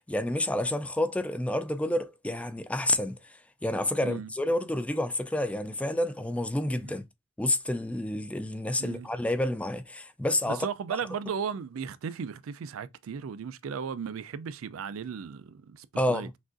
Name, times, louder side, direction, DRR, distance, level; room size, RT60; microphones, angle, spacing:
voice 1, 0.0-3.2 3.6-7.0 7.4-10.7 16.0-16.3, left 1 dB, 5° left, 0.3 m, -29 dB
voice 2, 4.0-4.3 6.8-6.9 8.8-9.1 10.5-16.3, right 6 dB, 80° right, 0.4 m, -36 dB
6.1 x 2.5 x 2.5 m
head